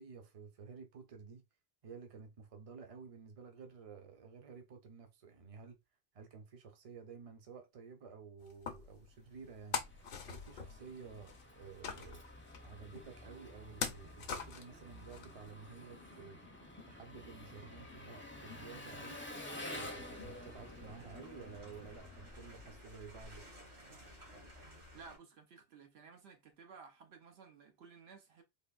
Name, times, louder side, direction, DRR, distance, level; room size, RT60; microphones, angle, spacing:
voice 1, 0.0-1.4 1.8-5.8 6.1-9.8 10.2-12.2 12.6-16.4 16.9-19.2 19.7-23.4, right 5 dB, 40° right, 0.7 m, -52 dB
sound 1, 8.4-15.5, left 6 dB, 65° left, 0.8 m, -43 dB
Engine, 9.3-22.9, left 1 dB, 15° left, 0.5 m, -51 dB
sound 2, 20.0-25.2, left 1 dB, 60° right, 1.6 m, -55 dB
voice 2, 24.9-28.4, right 5 dB, 80° right, 1.0 m, -56 dB
3.5 x 2.5 x 2.3 m
omnidirectional pair, 1.0 m